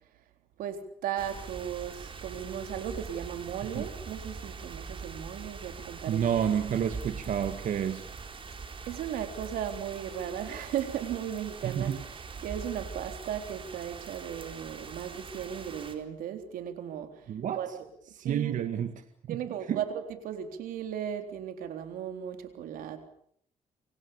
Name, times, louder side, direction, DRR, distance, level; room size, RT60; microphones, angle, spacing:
voice 1, 0.6-6.4 8.9-12.1 12.4-17.7 18.2-18.7 19.3-23.1, right 9 dB, 90° right, 7 dB, 3.8 m, -36 dB
sound 1, 1.2-16.0, right 4 dB, 40° right, 4.5 m, -43 dB
voice 2, 6.1-8.0 11.6-12.0 17.3-17.6 18.2-18.9 19.3-19.4 19.7-19.8, right 9 dB, 65° right, 8 dB, 1.9 m, -29 dB
28.0 x 25.0 x 7.2 m, 0.68 s
cardioid pair, 100°, 14 cm